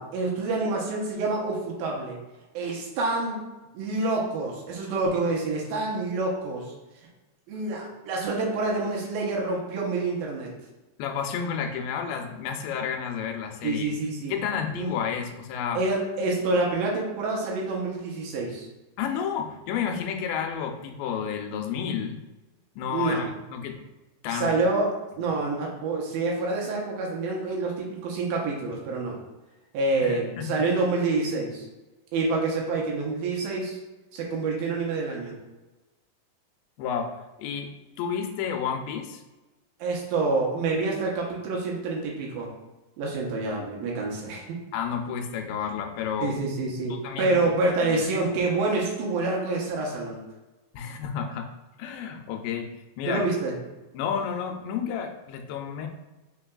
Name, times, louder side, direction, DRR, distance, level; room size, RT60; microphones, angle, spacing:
voice 1, 0.0-2.2 2.5-3.4 3.7-6.7 7.5-10.5 13.6-14.4 14.7-15.0 15.7-18.7 22.9-23.2 24.3-29.2 29.7-31.7 32.1-33.8 34.1-35.4 39.8-42.5 43.0-44.6 46.2-50.2 53.1-53.5, right 3 dB, 85° right, -2 dB, 2.7 m, -27 dB
voice 2, 11.0-13.9 14.3-15.8 19.0-22.2 22.8-23.8 24.2-24.6 30.0-30.6 36.8-37.7 38.0-39.2 44.7-46.4 46.9-47.5 47.8-48.3 50.7-51.5 51.8-52.7 53.0-53.2 53.9-55.9, left 7 dB, 85° left, 5 dB, 2.3 m, -31 dB
5.5 x 3.9 x 2.3 m, 1.1 s
omnidirectional pair, 4.1 m